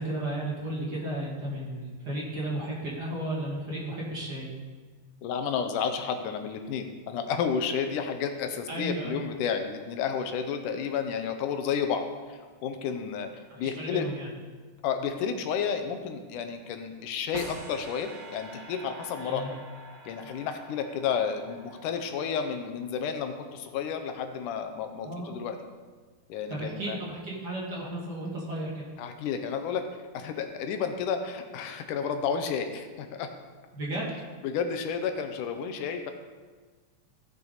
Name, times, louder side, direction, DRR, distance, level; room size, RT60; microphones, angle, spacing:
voice 1, 0.0-4.5 8.7-9.2 13.5-14.3 19.2-19.5 25.0-25.4 26.5-28.8 33.7-34.1, right 1 dB, 35° right, -5 dB, 2.5 m, -34 dB
voice 2, 5.2-13.3 13.6-14.1 14.8-19.6 20.1-25.6 26.3-27.0 29.0-29.8 30.1-33.3 34.4-36.1, left 6 dB, 80° left, 7 dB, 2.3 m, -31 dB
sound 1, 17.3-22.5, right 2 dB, 75° right, 2.6 m, -46 dB
15.0 x 6.9 x 4.0 m, 1.4 s
omnidirectional pair, 3.6 m